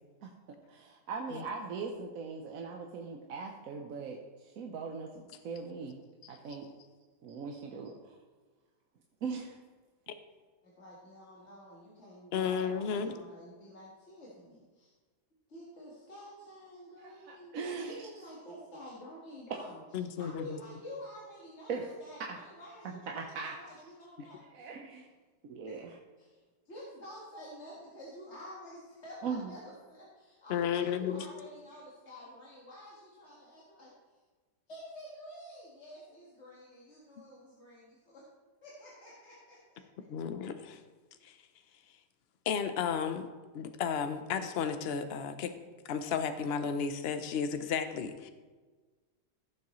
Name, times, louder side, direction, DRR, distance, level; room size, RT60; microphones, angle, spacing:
voice 1, 0.7-6.7 7.2-8.2 9.2-9.6 17.0-18.1 21.7-21.9 23.4-23.5 24.5-25.1 25.4-26.0 29.2-29.5, right 5 dB, 60° right, 1 dB, 1.1 m, -40 dB
voice 2, 10.6-14.9 15.5-19.7 20.2-22.2 22.6-22.8 23.1-23.7 24.0-24.7 25.7-25.8 26.2-26.4 26.6-33.9 34.7-38.3 38.6-40.0, left 1 dB, 45° left, -5 dB, 1.8 m, -49 dB
voice 3, 12.3-13.1 19.9-20.4 30.5-31.2 40.1-40.8 41.2-41.4 42.5-43.3 43.5-45.5 45.8-48.3, left 7 dB, 60° left, 9 dB, 0.6 m, -33 dB
15.5 x 7.1 x 3.1 m, 1.3 s
omnidirectional pair, 1.8 m